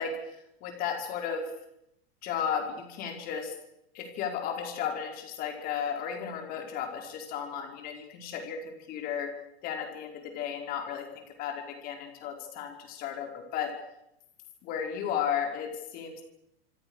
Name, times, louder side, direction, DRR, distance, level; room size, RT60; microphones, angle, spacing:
voice 1, 0.0-1.5 2.2-3.6 3.9-9.3 9.6-13.8 14.6-16.2, left 7 dB, 30° left, 4 dB, 5.3 m, -34 dB
27.0 x 25.5 x 6.6 m, 0.81 s
supercardioid pair, 170°, 31 cm